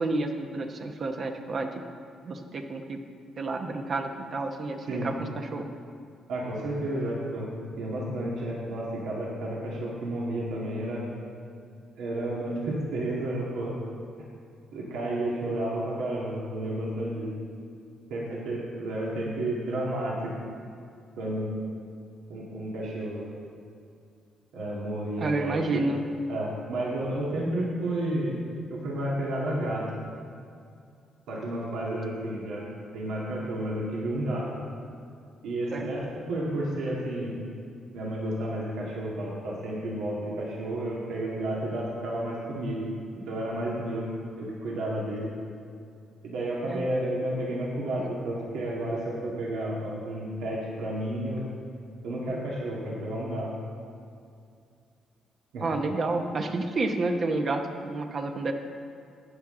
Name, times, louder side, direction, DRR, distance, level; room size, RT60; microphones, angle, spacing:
voice 1, 0.0-1.7 2.2-3.0 3.4-5.7 25.2-26.0 35.7-35.9 46.7-46.9 48.0-48.1 55.6-58.5, right 2 dB, 45° right, 4 dB, 1.0 m, -30 dB
voice 2, 6.3-7.5 7.8-11.0 12.0-13.7 14.7-17.3 18.1-20.4 21.2-21.5 22.3-23.2 24.5-25.8 26.3-28.4 28.7-29.9 31.3-32.6 32.9-34.6 35.4-37.3 37.9-42.9 43.2-44.1 44.4-45.3 46.2-51.4 52.0-53.5 55.5-55.6, right 1 dB, 85° right, -5 dB, 2.0 m, -31 dB
12.5 x 8.8 x 3.8 m, 2.4 s
cardioid pair, 90°, 0 cm